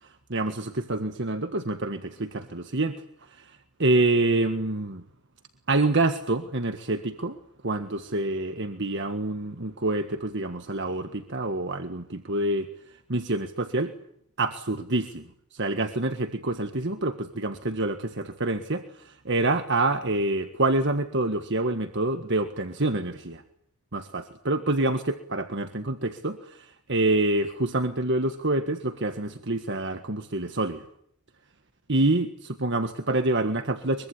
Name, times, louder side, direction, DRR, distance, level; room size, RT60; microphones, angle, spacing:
voice 1, 0.0-2.9 3.3-5.0 5.7-7.4 7.6-12.7 13.1-13.9 14.4-23.4 23.9-30.8 31.9-32.3 32.6-34.1, right 2 dB, 55° right, 8 dB, 1.6 m, -27 dB
24.0 x 23.5 x 10.0 m, 0.69 s
head